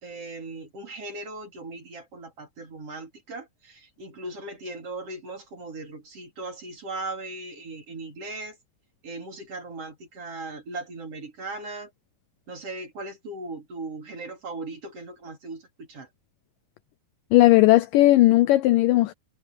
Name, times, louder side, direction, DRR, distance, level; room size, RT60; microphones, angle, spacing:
voice 1, 0.0-8.6 9.0-11.9 12.5-16.1, right 2 dB, 40° right, 4.3 m, -38 dB
voice 2, 17.3-19.1, left 17 dB, 85° left, 1.9 m, -17 dB
omnidirectional pair, 4.5 m